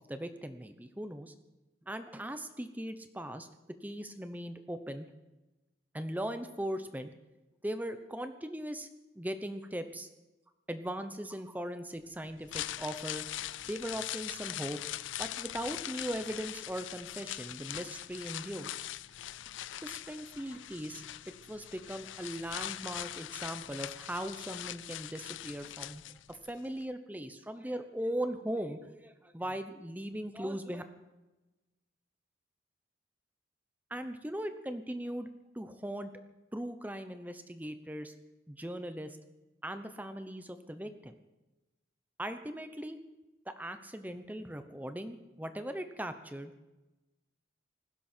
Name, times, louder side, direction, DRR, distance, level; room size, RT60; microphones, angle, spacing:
voice 1, 0.1-1.3 1.9-3.5 3.8-5.0 5.9-7.1 7.6-8.9 9.1-10.1 10.7-13.3 13.7-14.8 15.2-18.8 19.8-21.0 21.5-26.0 26.3-30.8 33.9-35.3 35.5-36.1 36.5-38.1 38.5-39.2 39.6-41.2 42.2-43.0 43.5-46.5, equal, 10° right, 9 dB, 0.8 m, -39 dB
sound 1, 12.3-26.5 26.8-26.9, left 13 dB, 85° left, 0.4 m, -41 dB
19.0 x 16.0 x 4.5 m, 1.1 s
head